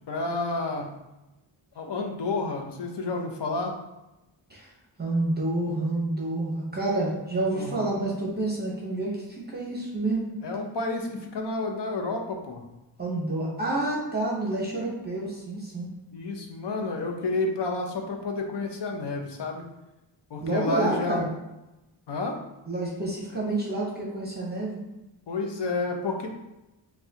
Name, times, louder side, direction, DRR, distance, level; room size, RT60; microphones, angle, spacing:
voice 1, 0.1-0.9 1.8-3.7 7.5-8.0 10.4-12.6 16.1-19.6 20.3-21.3 22.1-22.4 25.3-26.3, left 3 dB, 65° left, 2 dB, 0.7 m, -30 dB
voice 2, 5.0-10.3 13.0-15.9 20.4-21.3 22.7-24.8, right 2 dB, 20° right, -4 dB, 0.8 m, -29 dB
5.5 x 2.3 x 2.8 m, 0.97 s
wide cardioid pair, 100°, 46 cm